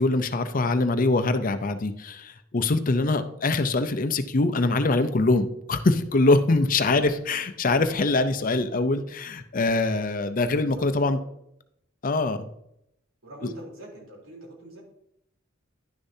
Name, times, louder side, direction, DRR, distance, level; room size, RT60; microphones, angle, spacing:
voice 1, 0.0-11.3 12.0-12.5, left 2 dB, 40° left, 10 dB, 0.6 m, -23 dB
voice 2, 13.2-14.8, right 1 dB, 85° right, -3 dB, 3.4 m, -43 dB
11.0 x 6.7 x 2.7 m, 0.77 s
head